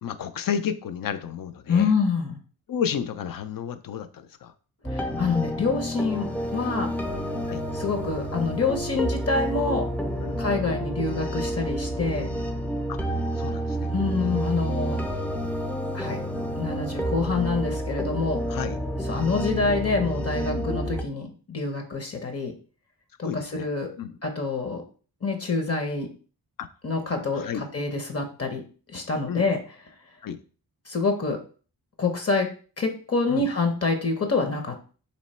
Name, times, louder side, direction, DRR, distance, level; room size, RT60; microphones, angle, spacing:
voice 1, 0.0-1.9 2.7-4.5 7.5-7.6 10.2-10.4 12.9-13.0 13.4-13.9 14.2-14.4 18.5-18.8 20.5-20.7 23.2-23.7 24.0-24.2 26.6-26.7 27.3-27.6 29.3-29.5 30.2-30.4 33.3-33.5, left 8 dB, 60° left, 10 dB, 0.5 m, -32 dB
voice 2, 1.7-2.4 4.9-6.9 7.7-9.9 10.4-12.3 13.9-15.0 15.9-16.2 16.6-18.4 19.1-22.5 23.2-23.9 24.2-24.8 25.2-26.1 26.8-28.6 28.9-29.6 30.9-31.4 32.0-32.5 32.8-34.8, left 4 dB, 40° left, 4 dB, 0.8 m, -26 dB
sound 1, 4.8-21.0, equal, 5° left, 0.4 m, -29 dB
3.1 x 2.9 x 4.2 m, 0.39 s
wide cardioid pair, 100°, 38 cm